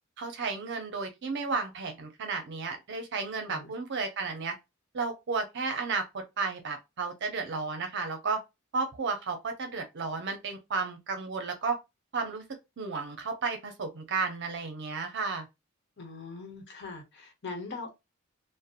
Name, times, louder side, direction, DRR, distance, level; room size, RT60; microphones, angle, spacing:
voice 1, 0.2-4.5 4.9-8.4 8.7-11.8 12.1-12.4 12.8-15.5, right 4 dB, 60° right, 0.6 m, -33 dB
voice 2, 16.0-17.9, left 3 dB, 55° left, 1.0 m, -41 dB
2.8 x 2.1 x 2.4 m
head